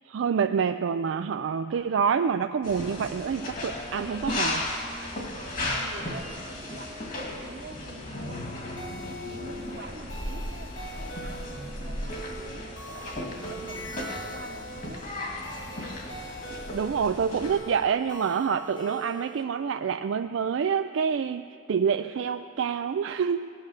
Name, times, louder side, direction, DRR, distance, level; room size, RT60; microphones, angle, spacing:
voice 1, 0.1-4.7 16.7-23.5, right 6 dB, 80° right, 7 dB, 0.4 m, -27 dB
sound 1, 2.6-17.6, left 1 dB, 45° left, 2.1 m, -35 dB
voice 2, 5.1-8.5 8.8-12.7 13.0-15.1, right 3 dB, 60° right, 6 dB, 1.0 m, -46 dB
sound 2, 8.8-19.4, right 1 dB, 70° left, 1.5 m, -43 dB
19.0 x 9.5 x 6.4 m, 2.6 s
head